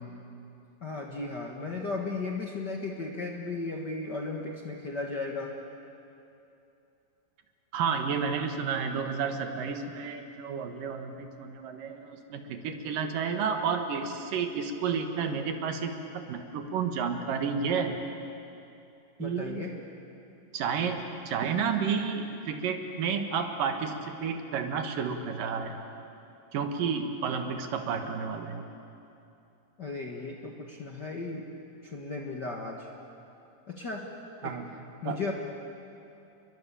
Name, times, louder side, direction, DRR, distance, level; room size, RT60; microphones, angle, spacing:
voice 1, 0.8-5.5 19.2-19.7 29.8-31.5 31.8-32.9 33.7-34.1 34.4-34.6 35.0-35.3, left 3 dB, 45° left, 0 dB, 1.5 m, -35 dB
voice 2, 7.7-18.0 19.2-19.7 20.5-25.8 26.5-28.7 34.4-34.8 35.0-35.2, right 6 dB, 75° right, 6 dB, 3.1 m, -31 dB
29.5 x 22.5 x 7.0 m, 2.8 s
omnidirectional pair, 4.0 m